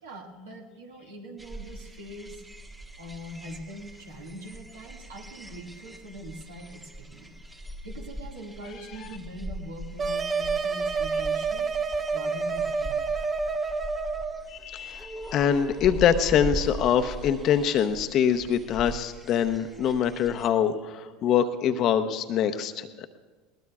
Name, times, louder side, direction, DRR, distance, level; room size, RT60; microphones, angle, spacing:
voice 1, 0.0-2.4 3.0-7.4 7.8-11.7 12.1-13.2, equal, 75° right, 0 dB, 2.0 m, -42 dB
sound 1, 1.4-20.5, right 1 dB, 10° right, 1.3 m, -41 dB
sound 2, 10.0-14.5, right 4 dB, 30° right, 1.0 m, -28 dB
voice 2, 14.5-22.9, left 8 dB, 50° left, 8 dB, 0.8 m, -24 dB
20.5 x 19.5 x 2.4 m, 1.4 s
hypercardioid pair, 75°, 0 cm